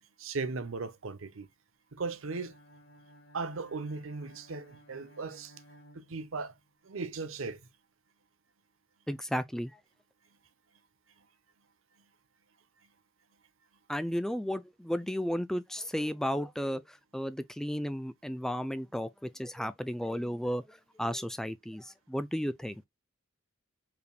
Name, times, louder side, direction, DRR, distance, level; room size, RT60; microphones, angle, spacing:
voice 1, 0.2-1.5 1.9-2.5 3.3-5.5 5.9-6.5 6.8-7.6, right 4 dB, 75° right, 0.8 m, -37 dB
Bowed string instrument, 2.1-6.7, equal, 55° left, 1.4 m, -57 dB
voice 2, 9.1-9.8 13.9-22.8, equal, ahead, 0.3 m, -34 dB
4.8 x 3.4 x 2.2 m
head